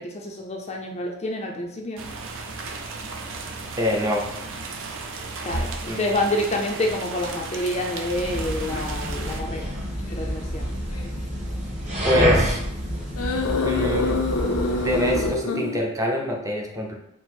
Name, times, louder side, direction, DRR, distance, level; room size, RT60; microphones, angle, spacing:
voice 1, 0.0-2.0 5.4-9.7 10.1-10.7, left 1 dB, 30° left, 0 dB, 0.5 m, -28 dB
sound 1, 2.0-9.4, right 3 dB, 60° right, 0.5 m, -34 dB
voice 2, 3.8-4.3 5.9-6.1 12.0-12.6 13.6-14.2 14.8-16.9, left 1 dB, 15° right, -1 dB, 0.6 m, -25 dB
sound 2, 6.3-6.5 7.2-7.3 8.7-8.9 10.0-10.3 10.9-11.1 13.2-15.8, left 3 dB, 80° left, 0.6 m, -26 dB
sound 3, 8.1-15.4, equal, 35° right, 1.3 m, -27 dB
4.4 x 2.0 x 4.2 m, 0.77 s
head